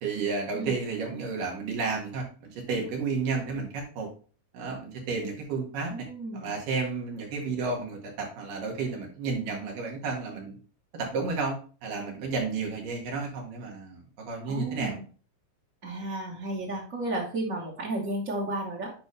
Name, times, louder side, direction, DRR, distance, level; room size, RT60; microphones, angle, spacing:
voice 1, 0.0-4.1 4.5-6.1 6.3-10.6 10.9-11.6 11.8-15.0, right 4 dB, 85° right, 0 dB, 3.5 m, -32 dB
voice 2, 5.9-6.5 14.5-15.0 15.8-18.9, right 2 dB, 45° right, -3 dB, 1.0 m, -33 dB
9.5 x 5.4 x 3.3 m, 0.38 s
omnidirectional pair, 3.7 m